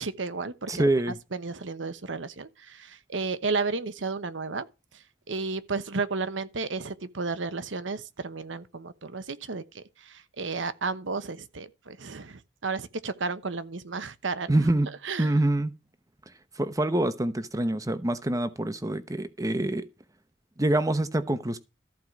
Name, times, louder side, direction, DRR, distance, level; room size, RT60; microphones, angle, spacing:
voice 1, 0.0-0.9 1.3-4.7 5.3-14.7 15.0-15.3, right 4 dB, 75° right, 1.0 m, -33 dB
voice 2, 0.7-1.2 14.5-14.9 15.2-15.7 16.6-19.9 20.6-21.6, right 1 dB, 20° right, 0.9 m, -25 dB
14.0 x 4.8 x 6.0 m
head